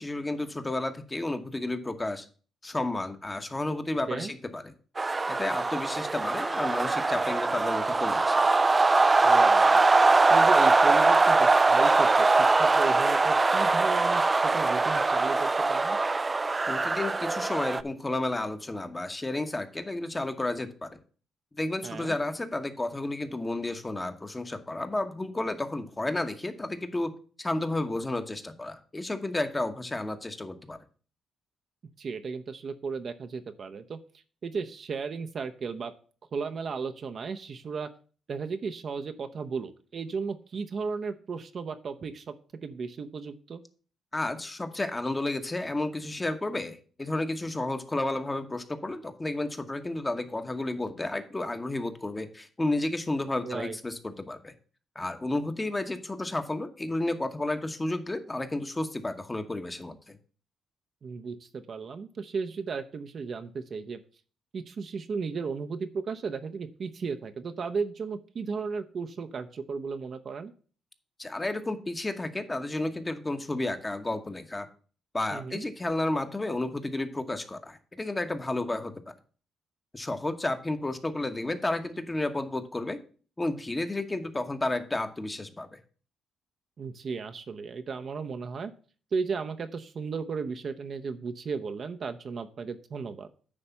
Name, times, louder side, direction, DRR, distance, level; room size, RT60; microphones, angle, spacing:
voice 1, 0.0-2.3 2.6-4.7 5.3-8.4 16.7-21.0 21.5-27.1 27.4-30.8 44.1-54.5 54.9-60.2 71.2-74.7 75.1-78.9 79.9-83.0 83.4-85.8, left 2 dB, 20° left, 7 dB, 1.0 m, -32 dB
sound 1, 5.0-17.8, right 3 dB, 25° right, 0.4 m, -22 dB
voice 2, 9.2-9.8 10.3-16.0 21.8-22.2 32.0-34.0 34.4-35.9 36.3-37.9 38.3-42.3 42.6-43.6 53.4-53.8 61.0-64.0 64.5-70.5 75.3-75.6 86.8-88.7 89.1-93.3, right 5 dB, 50° right, 8 dB, 0.7 m, -35 dB
9.7 x 3.3 x 6.9 m, 0.40 s
cardioid pair, 90°, 0 cm